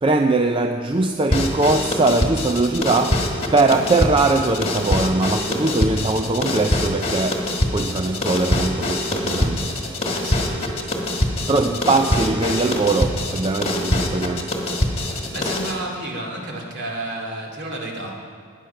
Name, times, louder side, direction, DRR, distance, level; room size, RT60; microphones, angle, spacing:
voice 1, 0.0-10.2 11.5-14.6 15.1-15.2, right 3 dB, 25° right, 0.4 m, -21 dB
sound 1, 1.3-15.8, left 1 dB, 25° left, 1.5 m, -24 dB
voice 2, 10.0-10.8 15.3-18.2, right 1 dB, 50° right, 2.4 m, -31 dB
19.0 x 9.4 x 5.8 m
head